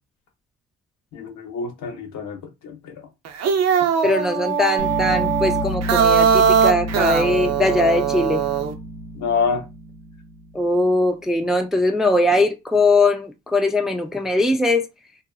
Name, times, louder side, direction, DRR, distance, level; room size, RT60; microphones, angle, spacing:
voice 1, 1.1-3.0 9.1-9.7, left 5 dB, 70° left, 0.9 m, -26 dB
sound 1, 3.2-8.7, right 7 dB, 60° right, 0.6 m, -20 dB
voice 2, 4.0-8.5 10.5-14.9, left 2 dB, ahead, 0.3 m, -20 dB
sound 2, 4.8-10.8, equal, 90° right, 0.8 m, -30 dB
2.6 x 2.5 x 2.3 m
cardioid pair, 90°, 30 cm